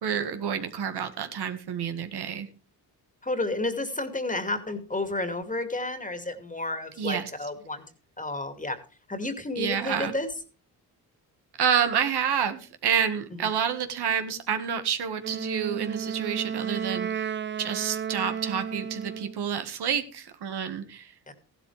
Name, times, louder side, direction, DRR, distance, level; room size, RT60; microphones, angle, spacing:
voice 1, 0.0-2.5 7.0-7.3 9.6-10.1 11.6-17.3 17.6-21.1, right 8 dB, 75° right, 8 dB, 1.7 m, -28 dB
voice 2, 3.2-7.8 8.2-8.8 9.1-10.3 13.3-13.4 21.3-21.4, left 2 dB, 20° left, 8 dB, 2.3 m, -31 dB
Wind instrument woodwind instrument, 15.2-19.4, right 7 dB, 30° right, 0.5 m, -33 dB
14.5 x 12.0 x 3.3 m, 0.36 s
cardioid pair, 75°, 40 cm